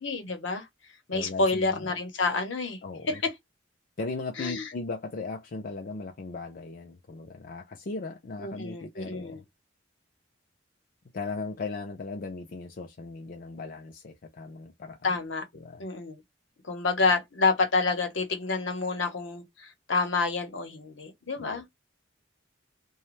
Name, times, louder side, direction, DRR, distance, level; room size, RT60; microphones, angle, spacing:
voice 1, 0.0-0.6 1.1-2.8 3.1-3.2 4.4-4.7 8.4-9.4 15.0-15.4 15.8-16.2 16.7-21.6, left 3 dB, 75° left, 0.9 m, -28 dB
voice 2, 1.1-1.9 2.8-3.2 4.0-9.4 11.1-15.1 15.5-15.8 21.4-21.6, left 3 dB, 45° left, 0.5 m, -37 dB
2.5 x 2.2 x 3.1 m
head